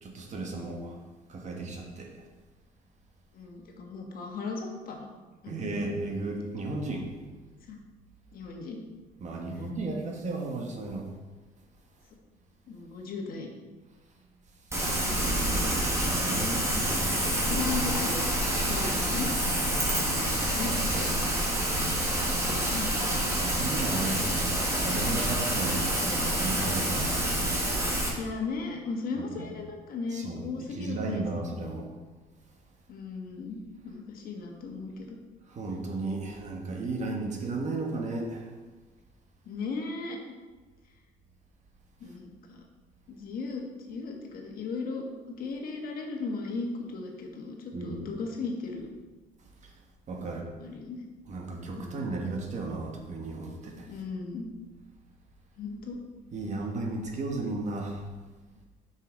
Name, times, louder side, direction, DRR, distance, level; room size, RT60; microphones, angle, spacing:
voice 1, 0.0-1.0 1.3-2.1 5.5-7.1 9.2-11.1 16.1-17.1 20.5-21.3 23.2-27.2 29.4-29.5 30.1-30.4 30.8-31.9 35.5-38.5 47.7-48.0 50.1-50.5 51.3-53.9 56.3-58.0, right 2 dB, 45° right, 1 dB, 1.3 m, -34 dB
voice 2, 3.3-5.1 5.4-5.8 7.7-7.8 8.3-8.8 9.5-9.6 12.7-13.5 14.8-15.4 17.0-18.2 18.7-20.7 22.4-22.9 28.2-31.6 32.9-35.2 39.4-40.2 42.0-42.6 43.1-45.0 45.4-48.9 50.2-51.0 51.8-52.3 53.9-54.5 55.6-56.0, left 4 dB, 60° left, 2 dB, 1.3 m, -37 dB
Rain, 14.7-28.1, right 1 dB, 15° right, 1.6 m, -27 dB
6.6 x 5.7 x 3.9 m, 1.2 s
cardioid pair, 110°, 17 cm